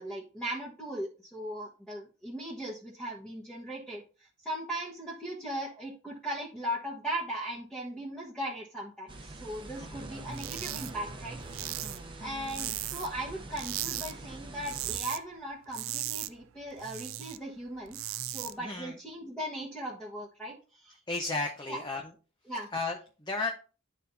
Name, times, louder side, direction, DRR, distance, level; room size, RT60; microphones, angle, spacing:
voice 1, 0.0-11.8 12.2-21.0 21.7-21.8 22.5-22.7, right 1 dB, 5° left, -5 dB, 1.2 m, -38 dB
sound 1, 9.1-15.0, right 2 dB, 25° right, 0.9 m, -44 dB
sound 2, 10.3-10.9 11.2-13.2 13.5-14.1 14.4-15.2 15.5-17.4 17.7-18.5, right 14 dB, 75° right, 0.5 m, -37 dB
voice 2, 18.6-19.0 21.1-22.0 22.7-23.5, left 3 dB, 20° left, 2 dB, 0.7 m, -34 dB
11.5 x 4.2 x 2.7 m, 0.36 s
head